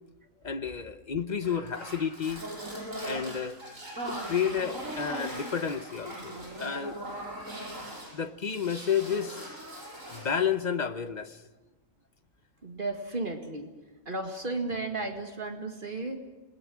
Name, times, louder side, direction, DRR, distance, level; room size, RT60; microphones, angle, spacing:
voice 1, 0.4-2.5 3.0-3.6 4.0-7.0 8.1-9.5 10.1-11.4, left 7 dB, 40° left, 10 dB, 0.9 m, -31 dB
sound 1, 1.4-8.1 8.4-10.4, right 1 dB, 80° right, 8.0 m, -39 dB
voice 2, 12.6-13.7 14.1-16.2, right 2 dB, 40° right, 4 dB, 2.0 m, -34 dB
27.5 x 21.0 x 6.2 m, 1.2 s
omnidirectional pair, 1.3 m